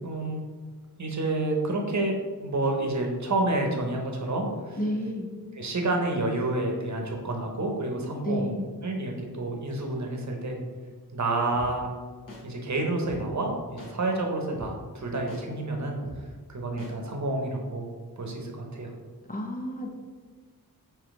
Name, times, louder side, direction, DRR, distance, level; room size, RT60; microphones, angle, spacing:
voice 1, 0.0-0.4 1.0-4.8 5.5-8.5 8.8-10.6 11.1-11.9 12.4-16.0 16.5-17.9 18.2-18.9, right 2 dB, 45° right, 1 dB, 0.8 m, -29 dB
voice 2, 4.8-5.3 8.2-8.7 19.3-19.9, equal, 20° left, -1 dB, 0.5 m, -30 dB
sound 1, 11.5-11.7 12.3-12.4 13.0-13.2 13.8-13.9 14.5-14.7 15.3-15.4 16.0-16.2 16.8-16.9, left 1 dB, 55° left, 1.1 m, -42 dB
3.9 x 2.9 x 4.6 m, 1.4 s
wide cardioid pair, 105°, 39 cm